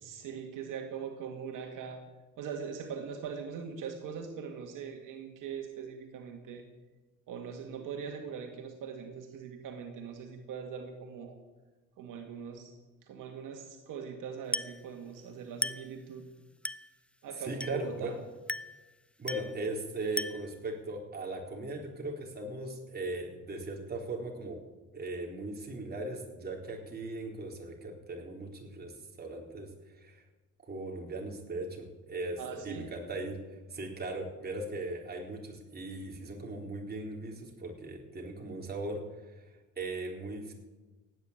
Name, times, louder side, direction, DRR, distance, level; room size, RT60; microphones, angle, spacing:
voice 1, 0.0-2.0 2.4-6.7 7.3-11.4 12.0-12.7 13.0-16.3 17.2-18.2 32.4-32.9, right 6 dB, 75° right, 4 dB, 2.1 m, -41 dB
Glass, 14.5-14.9 15.6-16.0 16.6-17.0 17.6-17.9 18.5-18.8 19.3-19.6 20.2-20.6, left 1 dB, 5° left, 0.4 m, -36 dB
voice 2, 17.5-18.1 19.2-24.6 24.9-28.9 29.2-30.2 30.6-39.4 39.8-40.5, right 2 dB, 30° right, 0 dB, 3.9 m, -38 dB
17.0 x 9.7 x 8.7 m, 1.2 s
cardioid pair, 105°, 32 cm